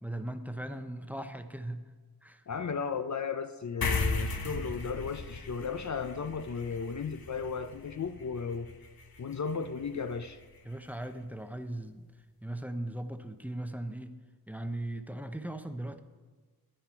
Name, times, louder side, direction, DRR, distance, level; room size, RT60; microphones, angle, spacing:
voice 1, 0.0-1.8 2.2-2.4 10.6-12.1 12.4-14.2 14.5-16.0, right 1 dB, 5° right, 8 dB, 0.6 m, -38 dB
voice 2, 2.5-8.7 9.2-10.4, left 5 dB, 50° left, 9 dB, 0.5 m, -35 dB
sound 1, 3.8-10.6, left 3 dB, 65° left, 1.0 m, -37 dB
10.0 x 9.9 x 4.5 m, 1.3 s
wide cardioid pair, 85°, 39 cm